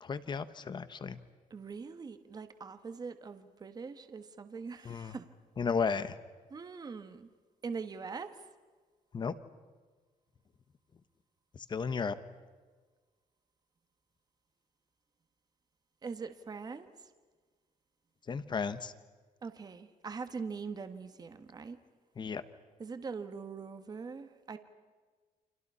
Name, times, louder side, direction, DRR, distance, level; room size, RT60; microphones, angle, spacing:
voice 1, 0.0-1.2 4.8-5.1 5.6-6.1 9.1-9.3 11.7-12.2 18.3-18.9 22.2-22.4, left 5 dB, 30° left, 13 dB, 1.3 m, -34 dB
voice 2, 1.5-5.3 6.5-7.3 7.6-8.3 16.0-16.9 19.4-21.8 22.8-24.6, right 5 dB, 25° right, 9 dB, 1.4 m, -42 dB
29.5 x 26.5 x 5.7 m, 1.4 s
cardioid pair, 165°, 15 cm